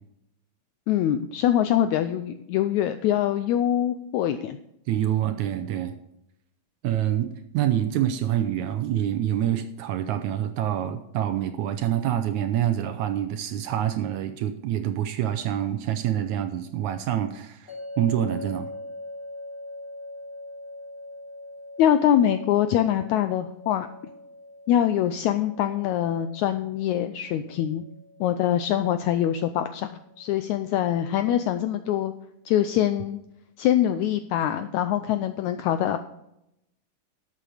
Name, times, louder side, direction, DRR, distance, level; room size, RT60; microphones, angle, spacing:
voice 1, 0.9-4.6 21.8-23.9 24.7-27.8 28.2-32.1 32.4-33.2 33.6-36.0, left 11 dB, 90° left, 10 dB, 1.6 m, -24 dB
voice 2, 4.9-5.9 6.8-18.7, right 11 dB, 75° right, 9 dB, 1.8 m, -26 dB
sound 1, 17.7-30.8, left 1 dB, 15° left, 3.0 m, -43 dB
11.5 x 7.7 x 4.9 m, 0.83 s
omnidirectional pair, 3.9 m